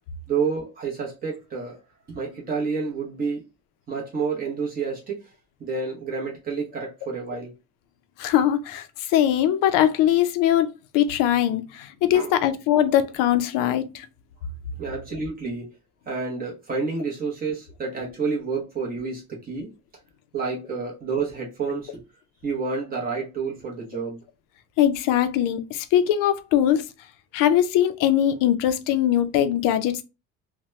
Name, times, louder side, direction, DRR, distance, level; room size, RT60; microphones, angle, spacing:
voice 1, 0.3-1.8 2.1-3.5 3.9-5.3 5.6-7.5 12.1-12.3 14.8-15.7 16.1-19.7 20.3-22.0 22.4-24.2, right 5 dB, 30° right, 0.8 m, -29 dB
voice 2, 8.2-14.1 24.8-26.8 27.3-30.0, left 11 dB, 85° left, 0.6 m, -21 dB
2.9 x 2.2 x 3.0 m
cardioid pair, 170°, 32 cm